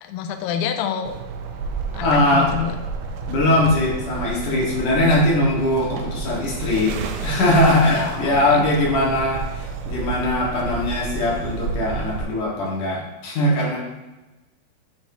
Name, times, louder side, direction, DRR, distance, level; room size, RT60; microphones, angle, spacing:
voice 1, 0.0-1.1 1.9-2.8 7.9-8.7, left 8 dB, 80° left, 6 dB, 2.2 m, -27 dB
sound 1, 1.0-12.2, right 5 dB, 80° right, 1.9 m, -30 dB
voice 2, 2.0-2.5 3.3-7.0 7.2-13.8, left 1 dB, 65° left, -4 dB, 2.8 m, -20 dB
10.5 x 4.1 x 2.7 m, 1.1 s
omnidirectional pair, 4.3 m